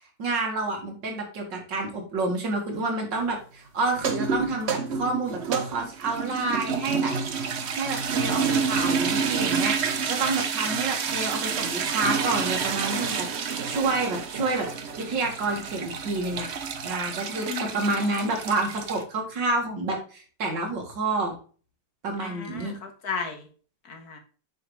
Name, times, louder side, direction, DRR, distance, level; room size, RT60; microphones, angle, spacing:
voice 1, 0.2-7.1 7.8-9.8 10.1-14.7 15.0-16.5 16.8-21.3 22.0-22.7, right 3 dB, 85° right, 2 dB, 2.6 m, -29 dB
sound 1, 3.9-19.0, right 6 dB, 50° right, 0.9 m, -29 dB
voice 2, 17.4-18.3 22.2-23.5 23.9-24.2, left 6 dB, 60° left, 4 dB, 1.9 m, -36 dB
7.8 x 5.2 x 3.3 m, 0.39 s
omnidirectional pair, 1.9 m